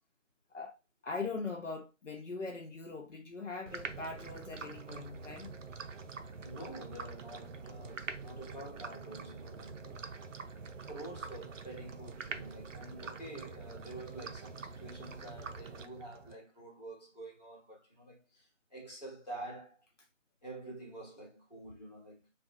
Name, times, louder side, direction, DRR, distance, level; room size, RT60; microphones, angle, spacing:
voice 1, 1.0-5.5, left 4 dB, 70° left, 0.6 m, -41 dB
sound 1, 3.7-16.4, right 5 dB, 75° right, 0.5 m, -45 dB
voice 2, 6.4-10.2 10.8-19.8 20.4-22.3, right 1 dB, 35° left, 0.9 m, -48 dB
2.3 x 2.0 x 2.7 m
figure-of-eight pair, 170°, 38 cm